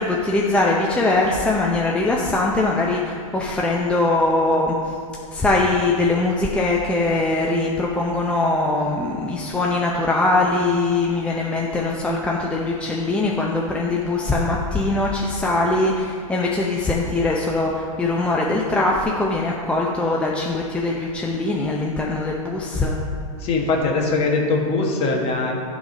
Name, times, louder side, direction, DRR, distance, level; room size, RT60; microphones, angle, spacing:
voice 1, 0.0-5.0 5.3-23.0, left 2 dB, 5° left, -2 dB, 0.6 m, -21 dB
voice 2, 23.4-25.5, left 3 dB, 35° left, 0 dB, 1.6 m, -21 dB
11.5 x 4.1 x 5.2 m, 2.3 s
hypercardioid pair, 125°, 18 cm